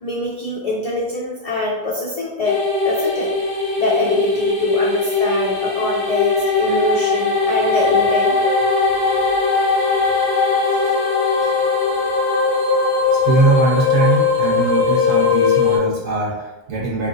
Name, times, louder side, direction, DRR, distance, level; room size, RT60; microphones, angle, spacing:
voice 1, 0.0-3.3 3.8-8.4, left 2 dB, 60° left, -4 dB, 0.4 m, -24 dB
sound 1, 2.4-15.8, left 4 dB, 25° right, 0.7 m, -19 dB
voice 2, 9.7-10.9 11.1-11.6 13.1-17.1, right 3 dB, 55° right, -5 dB, 0.9 m, -22 dB
2.7 x 2.5 x 2.7 m, 1.0 s
omnidirectional pair, 1.2 m